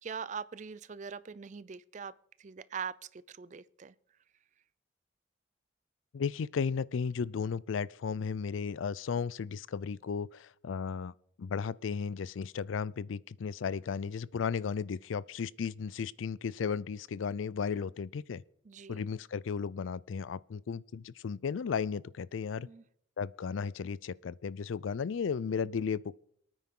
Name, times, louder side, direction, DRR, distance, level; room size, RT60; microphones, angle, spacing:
voice 1, 0.0-2.1 2.4-3.9 18.7-19.0 22.6-22.8, right 6 dB, 40° right, 0.4 m, -42 dB
voice 2, 6.1-11.1 11.4-18.4 18.9-22.7 23.2-26.2, left 6 dB, 85° left, 0.4 m, -35 dB
23.5 x 9.3 x 3.8 m
head